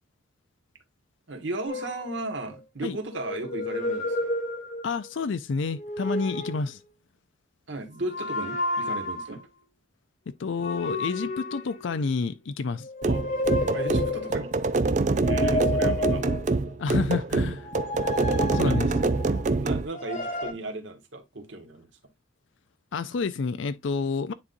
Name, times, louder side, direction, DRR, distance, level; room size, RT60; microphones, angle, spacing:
voice 1, 1.3-4.3 7.7-9.4 13.0-13.3 13.7-14.5 15.2-16.2 18.6-19.1 19.6-21.9, right 2 dB, 65° right, 1.6 m, -35 dB
sound 1, 1.7-2.6 3.1-5.1 5.7-6.7 8.0-9.4 10.6-12.3 12.8-14.5 15.1-16.7 17.6-19.4 19.9-20.5, left 2 dB, 40° left, 1.2 m, -31 dB
voice 2, 4.8-6.8 10.4-12.9 16.8-17.7 18.5-18.9 22.9-24.3, left 4 dB, 70° left, 0.4 m, -29 dB
sound 2, 13.0-19.9, right 3 dB, 35° right, 0.4 m, -25 dB
9.7 x 4.1 x 2.6 m
head